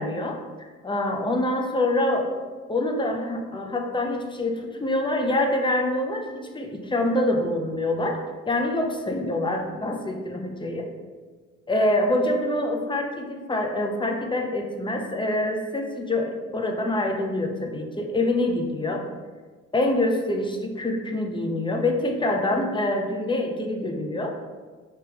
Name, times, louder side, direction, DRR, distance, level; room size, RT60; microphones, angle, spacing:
voice 1, 0.0-10.9 11.7-19.1 19.7-24.4, left 1 dB, 15° left, 2 dB, 0.6 m, -26 dB
3.5 x 2.9 x 4.5 m, 1.4 s
cardioid pair, 90°, 30 cm